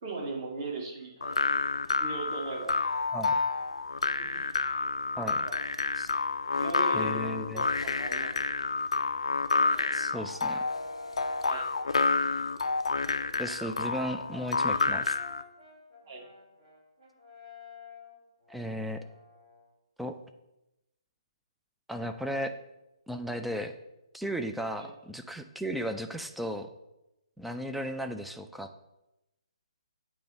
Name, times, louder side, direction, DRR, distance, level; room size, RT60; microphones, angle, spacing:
voice 1, 0.0-1.5 2.0-2.7 4.2-4.5 5.4-5.6 6.6-8.3 11.4-11.7 16.1-16.2 24.8-24.9, right 3 dB, 40° right, -1 dB, 1.8 m, -38 dB
sound 1, 1.2-15.4, left 4 dB, 75° left, 0.4 m, -29 dB
voice 2, 5.2-5.5 6.0-6.1 6.9-7.7 9.9-10.6 13.4-15.2 18.5-19.0 20.0-20.2 21.9-22.6 23.1-23.7 24.1-26.7 27.4-28.7, equal, ahead, 7 dB, 0.3 m, -35 dB
Brass instrument, 9.6-12.1 12.7-19.7, left 2 dB, 55° right, 2.3 m, -51 dB
8.5 x 3.1 x 5.2 m, 0.94 s
figure-of-eight pair, 140°, 3 cm